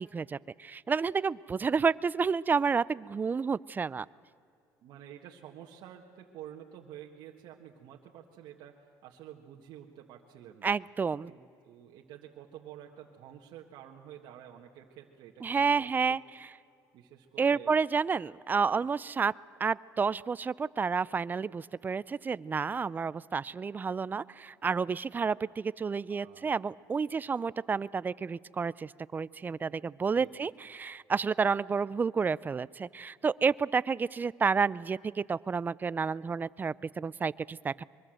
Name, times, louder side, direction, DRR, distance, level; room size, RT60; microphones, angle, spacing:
voice 1, 0.0-4.1 10.6-11.3 15.4-16.5 17.4-19.3 19.6-37.8, right 5 dB, 25° right, 21 dB, 0.5 m, -30 dB
voice 2, 4.8-10.7 11.3-16.2 16.9-17.7 18.7-18.9 26.1-26.5 30.1-30.5, right 10 dB, 75° right, 0 dB, 1.7 m, -50 dB
23.5 x 23.0 x 7.8 m, 2.4 s
cardioid pair, 105°, 7 cm